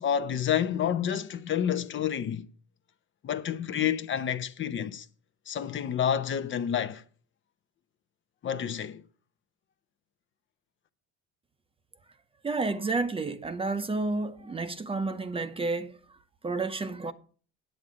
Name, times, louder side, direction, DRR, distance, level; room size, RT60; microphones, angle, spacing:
voice 1, 0.0-2.5 3.2-5.1 5.5-7.0 8.4-9.0, left 9 dB, 40° left, 0.8 m, -29 dB
voice 2, 12.4-16.0 16.4-17.1, right 3 dB, 20° right, 0.7 m, -30 dB
9.3 x 8.5 x 5.0 m
cardioid pair, 110°, 29 cm